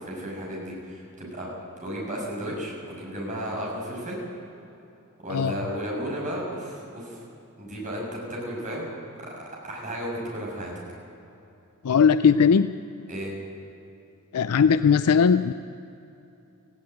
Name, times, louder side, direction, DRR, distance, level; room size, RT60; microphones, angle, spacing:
voice 1, 0.0-1.5 1.8-4.2 5.2-7.2 7.6-10.7 13.1-13.3, equal, 35° right, -2 dB, 6.4 m, -34 dB
voice 2, 11.8-12.7 14.3-15.5, left 6 dB, 80° left, 12 dB, 0.4 m, -19 dB
18.0 x 16.0 x 9.2 m, 2.8 s
head